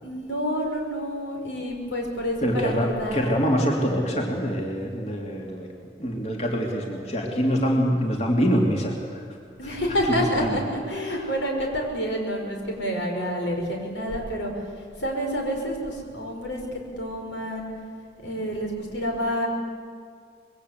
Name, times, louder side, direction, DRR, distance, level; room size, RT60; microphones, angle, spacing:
voice 1, 0.0-3.3 9.6-17.7 18.2-19.5, equal, 85° left, 1 dB, 5.8 m, -28 dB
voice 2, 2.4-5.7 6.0-9.3 9.6-9.8 10.1-10.6 11.1-11.2, equal, 35° left, 0 dB, 3.0 m, -25 dB
26.0 x 22.0 x 8.3 m, 2.1 s
head